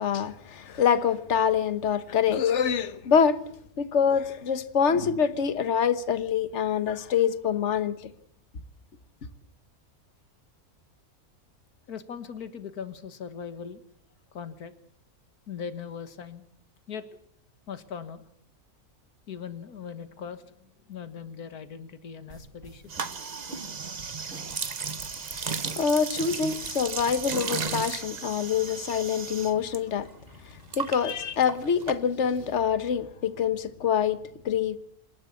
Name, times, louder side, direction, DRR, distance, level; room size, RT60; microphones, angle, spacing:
voice 1, 0.0-3.4 3.8-8.0 25.8-30.1 30.8-34.2 34.4-34.8, left 7 dB, 50° left, 1.5 m, -25 dB
voice 2, 11.9-13.9 14.3-14.7 15.5-16.4 16.9-17.1 17.7-18.2 19.3-22.8, left 7 dB, 85° left, 2.0 m, -39 dB
sound 1, 22.3-27.9, right 1 dB, 70° right, 4.9 m, -47 dB
sound 2, 22.9-29.8 30.0-32.4, right 5 dB, 35° right, 0.9 m, -35 dB
sound 3, 25.1-28.1, right 3 dB, 50° right, 3.3 m, -49 dB
27.0 x 12.0 x 8.4 m
omnidirectional pair, 1.6 m